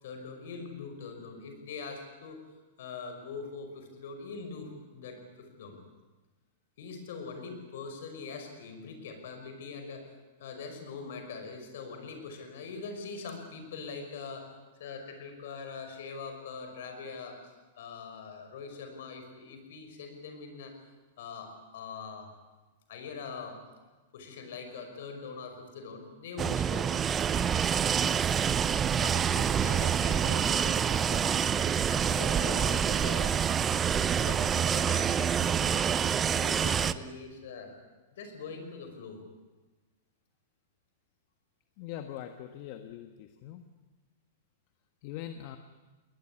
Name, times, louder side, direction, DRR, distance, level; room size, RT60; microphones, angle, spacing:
voice 1, 0.0-2.4 2.8-5.8 6.8-10.1 10.4-14.5 14.8-17.4 17.8-20.7 21.2-22.3 22.9-23.6 24.1-27.0 27.3-27.7 29.0-33.3 33.7-35.9 36.2-37.8 38.1-39.2, left 5 dB, 70° left, 6 dB, 5.6 m, -42 dB
sound 1, 26.4-36.9, right 8 dB, 25° right, 0.8 m, -27 dB
voice 2, 41.8-43.6 45.0-45.6, left 11 dB, 50° left, 7 dB, 1.5 m, -42 dB
20.5 x 20.0 x 9.8 m, 1.2 s
hypercardioid pair, 120°, 0 cm